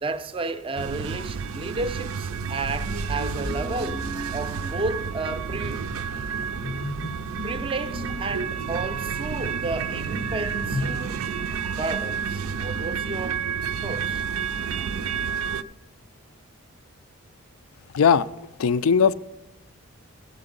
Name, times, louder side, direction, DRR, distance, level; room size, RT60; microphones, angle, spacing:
voice 1, 0.0-5.8 7.4-11.2 11.6-13.5 13.8-14.2, right 3 dB, 25° right, 0.5 m, -32 dB
sound 1, 0.8-15.6, right 6 dB, 80° right, 0.4 m, -30 dB
sound 2, 2.7-11.0, left 1 dB, 25° left, 0.5 m, -36 dB
voice 2, 17.9-18.3 18.6-19.1, left 6 dB, 75° left, 0.4 m, -18 dB
16.0 x 7.8 x 3.9 m
head